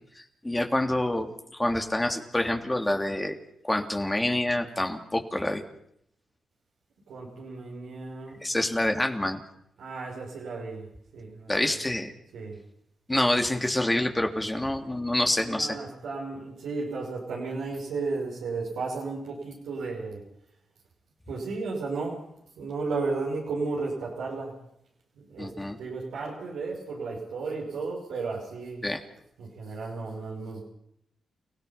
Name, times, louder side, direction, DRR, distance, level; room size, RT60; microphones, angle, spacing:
voice 1, 0.1-3.4 3.6-5.6 8.4-9.4 11.5-12.1 13.1-15.8 25.4-25.8 28.8-29.0, left 1 dB, 15° left, 4 dB, 3.2 m, -27 dB
voice 2, 7.1-8.4 9.8-11.8 12.3-12.6 15.1-20.2 21.3-22.3 22.6-24.6 25.1-28.9 29.4-30.6, right 3 dB, 90° right, -5 dB, 5.8 m, -34 dB
30.0 x 16.5 x 6.0 m, 0.72 s
cardioid pair, 60°, 0 cm